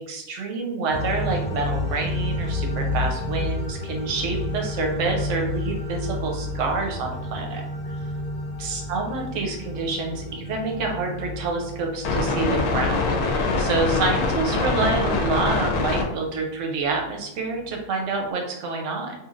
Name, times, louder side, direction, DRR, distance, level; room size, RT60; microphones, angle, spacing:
voice 1, 0.1-7.9 8.6-19.1, right 3 dB, 65° right, 2 dB, 0.8 m, -27 dB
sound 1, 0.9-16.1, left 3 dB, 80° left, 1.1 m, -27 dB
3.1 x 2.7 x 2.4 m, 0.85 s
omnidirectional pair, 1.6 m